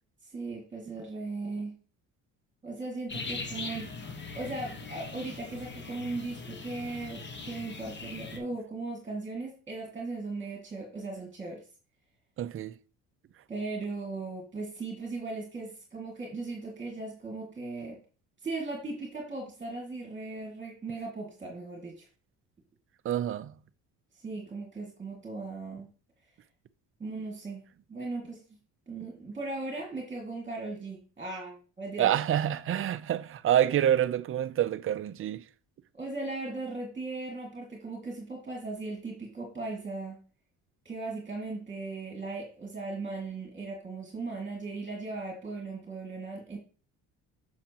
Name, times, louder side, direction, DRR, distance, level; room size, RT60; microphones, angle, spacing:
voice 1, 0.2-1.8 2.6-3.9 4.3-11.6 13.5-18.0 18.4-22.1 24.2-25.9 27.0-27.6 27.9-28.6 28.9-32.1 35.9-40.2 40.9-46.6, right 3 dB, 20° right, 2.0 m, -38 dB
sound 1, 3.1-8.4, left 3 dB, 30° left, 1.1 m, -40 dB
voice 2, 12.4-12.7 23.0-23.5 32.0-35.4, right 11 dB, 40° right, 0.5 m, -27 dB
7.3 x 6.4 x 2.9 m
cardioid pair, 105°, 34 cm